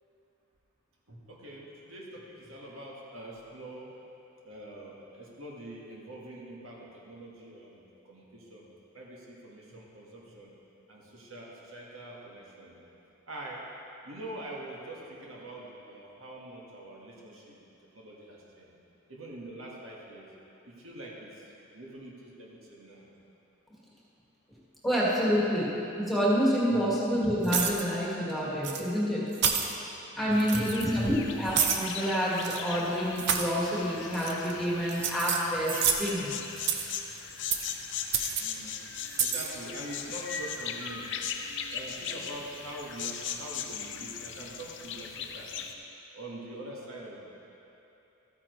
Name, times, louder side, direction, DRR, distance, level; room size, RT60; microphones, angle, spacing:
voice 1, 1.1-3.9 4.4-8.7 8.9-10.5 10.9-12.8 13.3-13.6 14.0-17.6 17.9-18.7 19.1-20.3 20.6-23.1 26.7-26.8 30.3-30.7 31.0-31.1 38.4-38.8 39.2-41.2 41.7-45.5 46.1-47.2, right 1 dB, 75° right, -4 dB, 1.6 m, -44 dB
voice 2, 24.8-25.7 26.0-29.3 30.2-36.4, equal, ahead, -7 dB, 1.8 m, -28 dB
sound 1, 27.4-27.8 28.6-28.8 29.3-29.7 30.4-30.9 31.5-31.8 32.4-32.6 33.2-33.5 34.1-34.5 34.9-36.1 36.6-37.0 37.5-37.7 38.1-38.4 39.1-39.5, right 7 dB, 55° right, 0.7 m, -29 dB
sound 2, 30.3-45.7, left 7 dB, 60° left, 0.6 m, -39 dB
13.5 x 9.7 x 3.2 m, 2.9 s
head